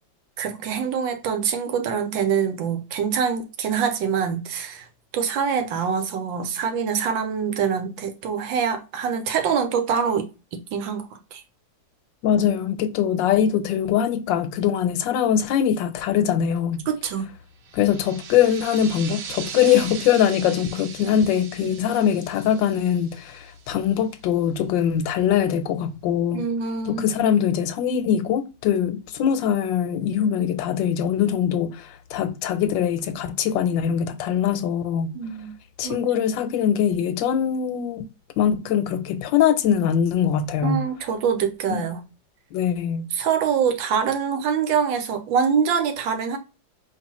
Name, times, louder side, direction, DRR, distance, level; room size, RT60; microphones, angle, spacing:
voice 1, 0.4-4.9 5.1-11.4 16.9-17.3 21.6-21.7 26.3-27.1 35.1-35.5 35.8-36.0 40.6-42.0 43.1-46.4, right 7 dB, 90° right, 1.5 m, -25 dB
voice 2, 12.2-16.8 17.7-26.4 26.9-35.1 35.8-38.1 38.4-40.8 41.7-41.8 42.5-43.1, left 9 dB, 80° left, 1.3 m, -22 dB
sound 1, 17.6-23.9, right 8 dB, 70° right, 0.8 m, -39 dB
4.7 x 3.0 x 3.0 m
omnidirectional pair, 2.1 m